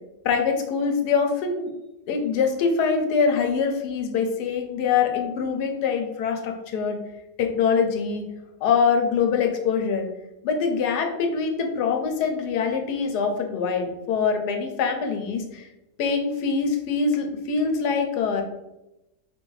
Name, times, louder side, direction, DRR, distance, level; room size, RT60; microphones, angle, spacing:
voice 1, 0.2-1.7 2.1-7.0 7.4-8.3 8.6-10.1 10.4-15.6 16.0-18.4, left 5 dB, 90° left, 4 dB, 1.3 m, -24 dB
3.8 x 2.6 x 4.6 m, 0.92 s
omnidirectional pair, 1.7 m